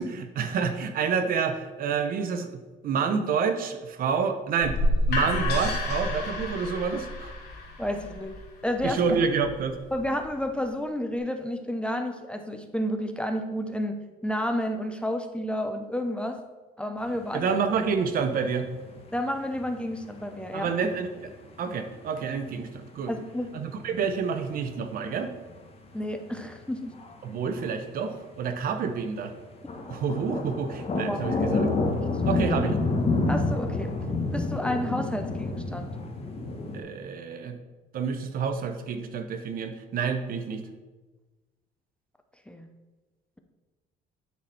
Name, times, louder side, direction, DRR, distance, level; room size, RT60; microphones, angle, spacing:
voice 1, 0.0-2.5 2.8-4.8 5.1-7.3 8.8-9.7 17.3-18.7 20.5-21.3 21.6-23.1 23.5-25.3 27.2-29.3 29.9-31.6 32.2-32.7 36.7-37.6 37.9-40.6, right 6 dB, 60° right, 8 dB, 0.8 m, -28 dB
sound 1, 4.6-10.4, left 1 dB, 75° left, 2.0 m, -30 dB
voice 2, 7.8-9.0 9.9-14.0 14.2-16.4 16.8-17.5 19.1-20.7 23.1-23.6 25.9-26.9 31.0-31.2 32.3-32.5 33.3-33.9 34.3-35.9 42.5-42.7, left 1 dB, 5° left, 6 dB, 0.6 m, -31 dB
sound 2, 17.1-22.1 22.5-22.9 23.2-23.4 23.9-24.0 24.8-24.9 25.5-25.6 25.9-26.0 26.6-27.1 27.6-27.7 28.2-28.4 28.7-29.0 29.5-36.8, left 3 dB, 35° left, 1.2 m, -28 dB
9.5 x 4.2 x 4.3 m, 1.2 s
cardioid pair, 110°, 17 cm